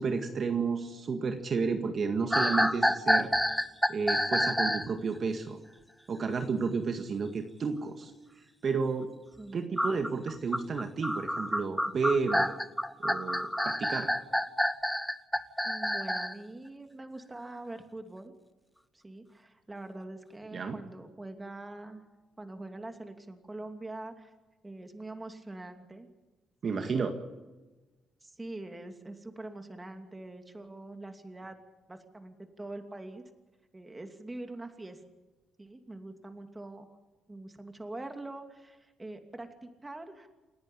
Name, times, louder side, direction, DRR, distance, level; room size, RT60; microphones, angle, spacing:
voice 1, 0.0-3.3 3.9-5.6 6.1-8.1 8.6-9.1 9.5-12.6 13.0-14.1 20.5-20.8 26.6-27.1, right 5 dB, 50° right, 5 dB, 1.9 m, -31 dB
sound 1, 2.3-4.9 9.8-16.4, equal, ahead, 1.0 m, -28 dB
voice 2, 15.6-18.3 18.9-22.0 22.4-24.3 24.6-26.1 26.6-26.9 28.2-31.6 31.9-33.3 33.7-35.0 35.6-36.9 37.3-40.3, right 2 dB, 15° right, 6 dB, 2.7 m, -44 dB
29.0 x 10.5 x 10.0 m, 1.2 s
cardioid pair, 90°, 0 cm